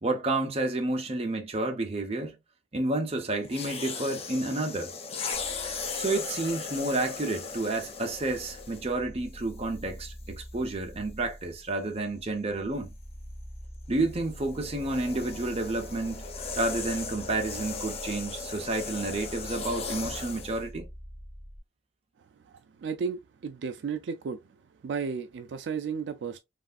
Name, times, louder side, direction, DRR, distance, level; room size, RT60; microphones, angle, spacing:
voice 1, 0.0-2.4 2.7-4.9 5.9-12.9 13.9-16.2 16.5-20.9, right 2 dB, 35° right, 0.7 m, -30 dB
sound 1, 3.4-9.0 9.8-10.0 14.0-20.6, left 5 dB, 35° left, 0.5 m, -38 dB
sound 2, 5.3-21.6, equal, 5° left, 1.2 m, -46 dB
voice 2, 22.4-24.4 24.8-26.4, right 6 dB, 70° right, 0.3 m, -34 dB
3.3 x 2.4 x 2.4 m
head